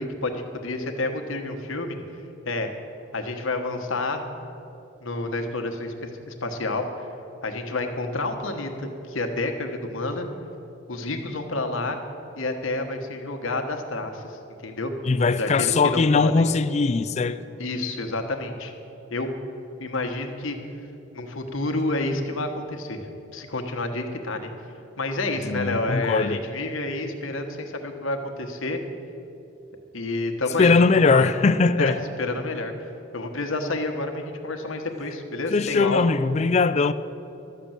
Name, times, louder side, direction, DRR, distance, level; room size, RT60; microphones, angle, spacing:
voice 1, 0.0-2.0 2.4-2.7 3.1-4.2 5.0-6.9 7.4-10.3 10.9-12.0 12.3-14.9 15.4-16.5 17.6-18.7 19.1-19.3 19.8-20.6 21.1-23.1 23.3-24.5 25.0-28.8 29.9-31.3 31.8-32.7 33.1-36.1, left 2 dB, 75° left, 4 dB, 1.2 m, -29 dB
voice 2, 15.1-17.4 25.4-26.4 30.6-32.0 35.5-36.9, left 4 dB, 35° left, 13 dB, 0.3 m, -20 dB
12.0 x 6.8 x 8.9 m, 2.9 s
head